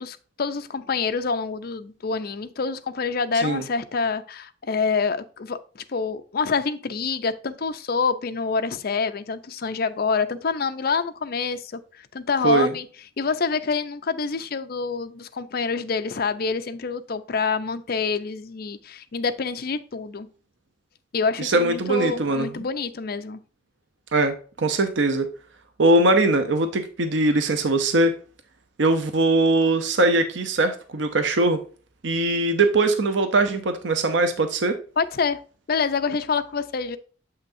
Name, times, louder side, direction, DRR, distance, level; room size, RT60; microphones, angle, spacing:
voice 1, 0.0-12.9 13.2-20.3 21.1-23.4 35.0-35.4 35.7-37.0, left 5 dB, 55° left, 10 dB, 0.5 m, -26 dB
voice 2, 21.4-22.5 24.1-25.3 25.8-28.1 28.8-31.6 32.0-34.7, right 2 dB, 80° right, 8 dB, 0.7 m, -21 dB
7.6 x 5.7 x 2.6 m, 0.39 s
head